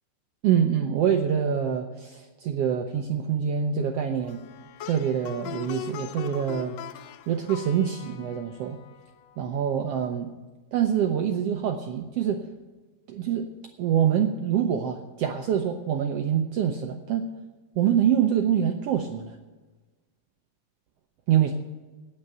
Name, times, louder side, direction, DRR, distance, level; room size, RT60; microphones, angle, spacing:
voice 1, 0.4-4.4 4.8-6.7 7.3-8.8 9.4-10.3 10.7-12.4 13.1-13.5 13.8-17.3 17.8-19.3 21.3-21.5, right 8 dB, 75° right, 5 dB, 1.4 m, -25 dB
Plucked string instrument, 4.2-9.5, left 11 dB, 80° left, 1.5 m, -41 dB
9.5 x 8.7 x 8.9 m, 1.2 s
omnidirectional pair, 3.5 m